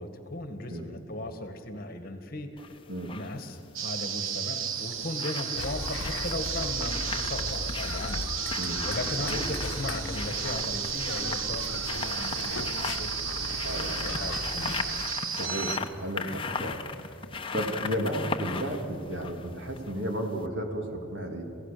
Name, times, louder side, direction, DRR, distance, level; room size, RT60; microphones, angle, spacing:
voice 1, 0.0-2.6 3.1-13.1 13.7-14.5, left 1 dB, 45° left, 8 dB, 1.8 m, -37 dB
sound 1, 2.6-3.3 4.5-20.1 20.4-20.5, left 4 dB, 25° left, 1.0 m, -38 dB
sound 2, 3.8-15.8, right 7 dB, 80° right, 1.1 m, -33 dB
sound 3, 5.6-15.1, left 3 dB, 75° left, 0.9 m, -37 dB
voice 2, 13.6-14.0 15.3-16.8 17.5-21.4, equal, 65° right, 3 dB, 2.8 m, -33 dB
28.0 x 16.0 x 6.9 m, 2.8 s
head